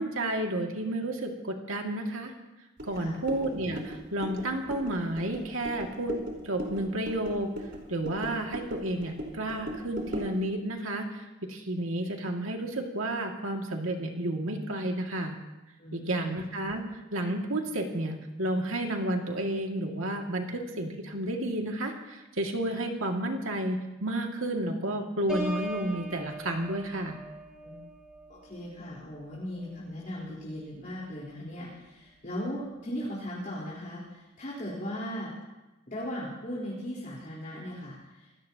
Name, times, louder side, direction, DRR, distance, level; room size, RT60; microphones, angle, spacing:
voice 1, 0.0-2.3 2.9-6.2 6.4-7.5 7.9-15.4 15.9-16.8 17.1-27.2, right 1 dB, 80° right, 1 dB, 2.2 m, -31 dB
sound 1, 2.8-10.4, right 1 dB, 55° right, 4.3 m, -39 dB
voice 2, 15.8-16.3 27.6-27.8 28.3-35.3 35.9-38.3, equal, 40° left, -6 dB, 4.1 m, -38 dB
Piano, 25.3-30.9 31.4-31.7, equal, 5° right, 6.5 m, -41 dB
27.0 x 17.0 x 2.9 m, 1.0 s
head